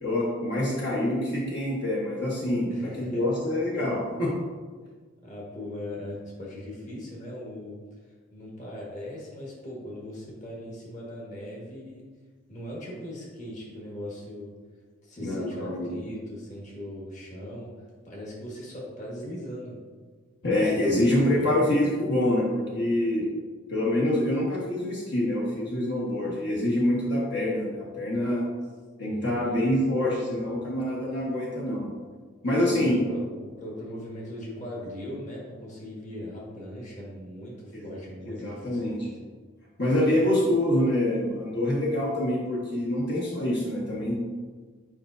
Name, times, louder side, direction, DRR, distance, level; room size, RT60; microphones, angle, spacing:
voice 1, 0.0-4.3 15.2-15.9 20.4-23.3 23.7-28.4 29.0-31.9 32.4-33.0 37.7-37.9 38.3-39.0 39.8-44.2, left 1 dB, 55° left, -6 dB, 1.3 m, -26 dB
voice 2, 2.7-3.4 5.2-7.8 8.3-12.1 12.5-14.5 15.0-17.7 18.0-19.8 29.1-29.7 32.6-39.3, left 1 dB, 35° left, -4 dB, 1.5 m, -39 dB
8.9 x 4.9 x 2.6 m, 1.5 s
head